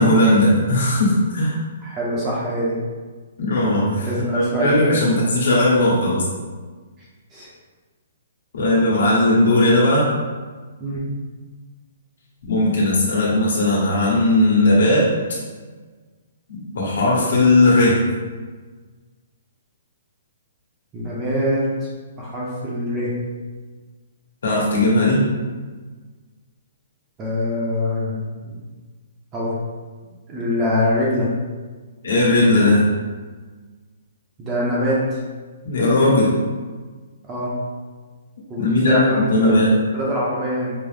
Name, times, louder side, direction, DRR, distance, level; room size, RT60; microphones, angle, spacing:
voice 1, 0.0-1.5 3.4-6.3 8.5-10.1 12.5-15.1 16.7-18.0 24.4-25.2 32.0-32.9 35.6-36.3 38.6-39.7, left 1 dB, 65° left, -4 dB, 1.3 m, -17 dB
voice 2, 1.8-2.8 4.1-4.7 7.3-7.5 10.8-11.0 20.9-21.9 22.2-23.1 27.2-28.5 29.3-29.6 30.3-31.3 34.4-35.2 37.3-37.5 38.5-39.5 39.9-40.7, left 1 dB, 15° right, -6 dB, 0.6 m, -24 dB
5.3 x 2.0 x 3.3 m, 1.4 s
hypercardioid pair, 180°, 0 cm